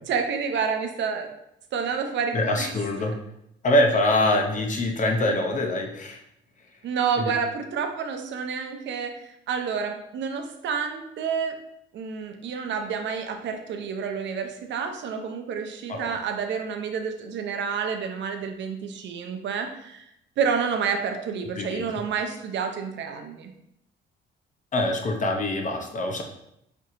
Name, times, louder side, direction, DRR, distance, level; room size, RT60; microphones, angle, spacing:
voice 1, 0.1-1.3 1.7-2.7 6.8-11.6 11.9-20.1 20.4-23.5, right 6 dB, 65° right, 5 dB, 0.5 m, -29 dB
voice 2, 2.3-3.2 3.6-6.2 7.2-7.3 15.9-16.2 21.6-21.9 24.7-26.2, left 1 dB, 40° left, 3 dB, 0.6 m, -24 dB
4.4 x 2.7 x 2.5 m, 0.78 s
cardioid pair, 90°, 20 cm